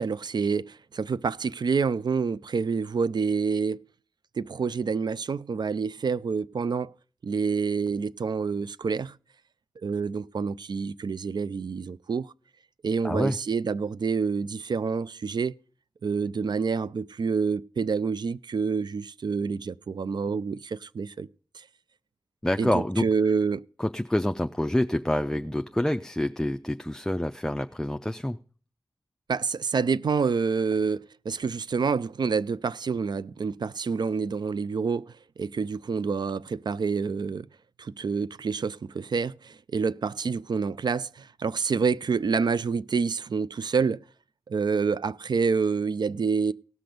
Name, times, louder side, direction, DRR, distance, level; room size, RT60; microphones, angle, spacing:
voice 1, 0.0-3.8 4.4-6.9 7.2-9.2 9.8-12.3 12.8-15.5 16.0-21.3 21.6-21.7 22.6-23.6 29.3-37.5 37.8-44.0 44.5-46.5, right 5 dB, 65° right, 0.4 m, -27 dB
voice 2, 13.0-13.4 22.4-23.1 23.8-28.4, left 1 dB, 5° left, 0.5 m, -27 dB
17.5 x 6.0 x 5.1 m
wide cardioid pair, 65°, 8 cm